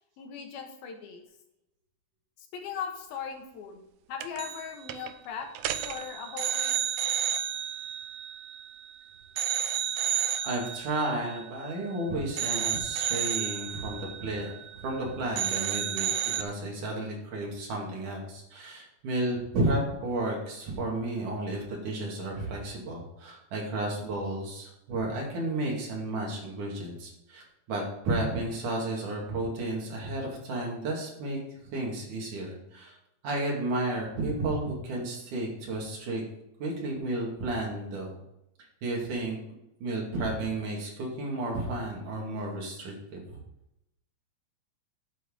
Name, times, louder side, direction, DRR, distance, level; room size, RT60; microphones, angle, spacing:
voice 1, 0.2-1.2 2.5-3.8 4.1-5.5 5.9-6.7, left 7 dB, 85° left, 4 dB, 3.3 m, -38 dB
sound 1, 4.2-4.6 4.9-5.1 5.6-8.9 9.4-12.0 12.4-15.0 15.4-16.4, right 10 dB, 80° right, 1.9 m, -32 dB
voice 2, 10.4-14.5 14.8-16.1 16.4-31.4 31.7-33.0 33.2-36.2 36.6-38.1 38.8-39.4 39.8-43.4, right 2 dB, 60° right, -2 dB, 3.8 m, -32 dB
10.0 x 8.2 x 3.9 m, 0.85 s
omnidirectional pair, 4.3 m